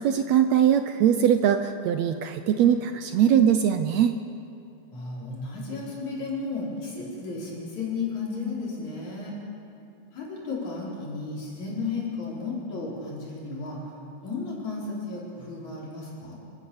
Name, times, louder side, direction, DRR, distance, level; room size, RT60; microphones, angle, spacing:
voice 1, 0.0-4.2, right 9 dB, 75° right, 8 dB, 1.7 m, -21 dB
voice 2, 4.9-9.3 10.1-13.8 14.2-16.4, left 4 dB, 65° left, -4 dB, 6.0 m, -33 dB
29.0 x 14.5 x 7.1 m, 2.7 s
omnidirectional pair, 3.6 m